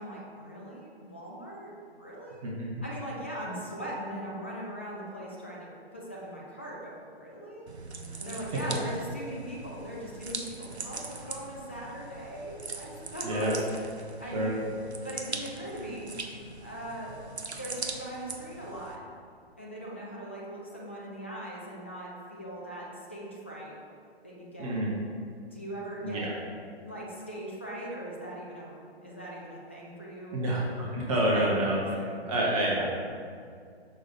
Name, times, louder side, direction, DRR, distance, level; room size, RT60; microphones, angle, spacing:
voice 1, 0.0-2.4 2.8-7.7 8.2-13.8 14.2-14.7 15.0-16.1 16.6-17.1 17.5-19.0 19.6-23.8 24.2-24.8 25.5-26.3 26.7-30.4 31.3-32.2, right 1 dB, 10° left, -4 dB, 0.3 m, -40 dB
sound 1, 7.7-19.0, right 3 dB, 85° right, 0.7 m, -41 dB
voice 2, 13.2-13.5 14.3-14.5 24.6-24.9 26.0-26.3 30.3-31.8 32.3-32.8, right 1 dB, 35° right, -4 dB, 1.0 m, -28 dB
6.1 x 4.7 x 4.3 m, 2.2 s
figure-of-eight pair, 130°, 32 cm